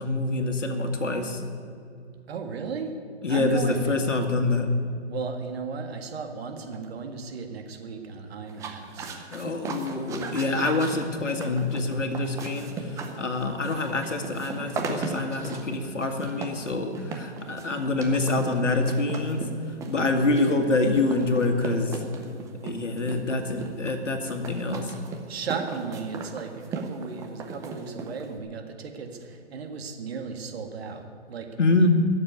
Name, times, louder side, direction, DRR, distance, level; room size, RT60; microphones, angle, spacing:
voice 1, 0.0-1.4 3.2-4.7 9.3-19.4 19.9-22.0 22.6-24.9 31.6-31.9, left 2 dB, 90° left, 5 dB, 2.0 m, -26 dB
voice 2, 2.3-2.9 3.3-3.8 5.1-9.1 25.3-31.5 31.8-31.9, right 5 dB, 60° right, 5 dB, 2.0 m, -35 dB
sound 1, 8.5-28.4, right 4 dB, 10° right, 0.6 m, -37 dB
14.0 x 7.4 x 9.5 m, 2.5 s
hypercardioid pair, 140°, 36 cm